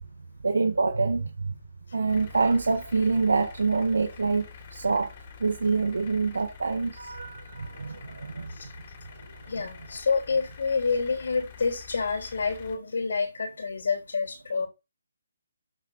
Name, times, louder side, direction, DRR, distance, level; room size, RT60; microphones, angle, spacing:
voice 1, 0.4-1.5 1.9-5.1 5.4-8.5, right 4 dB, 80° right, 1.5 m, -26 dB
sound 1, 2.1-12.8, left 8 dB, 35° left, 3.2 m, -47 dB
voice 2, 9.5-14.7, left 4 dB, 70° left, 3.8 m, -28 dB
13.0 x 6.6 x 4.2 m
hypercardioid pair, 160°, 0 cm